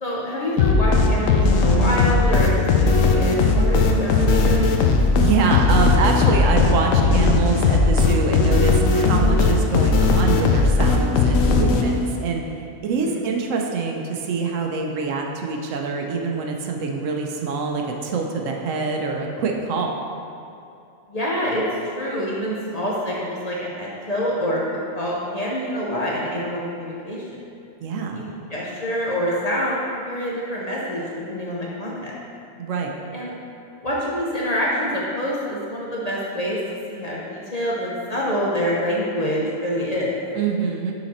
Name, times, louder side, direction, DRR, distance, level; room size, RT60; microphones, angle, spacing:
voice 1, 0.0-4.8 13.0-13.1 21.1-21.6 21.9-24.6 24.9-27.4 28.1-28.2 28.5-32.1 33.1-33.3 33.8-36.6 36.9-40.1, equal, 40° left, -5 dB, 0.7 m, -26 dB
sound 1, 0.6-12.2, left 3 dB, 80° left, 1.0 m, -18 dB
voice 2, 5.2-12.4 12.8-20.1 27.8-28.3 32.6-33.0 40.3-40.9, right 4 dB, 80° right, 2 dB, 1.0 m, -25 dB
5.7 x 4.1 x 4.2 m, 2.6 s
omnidirectional pair, 1.3 m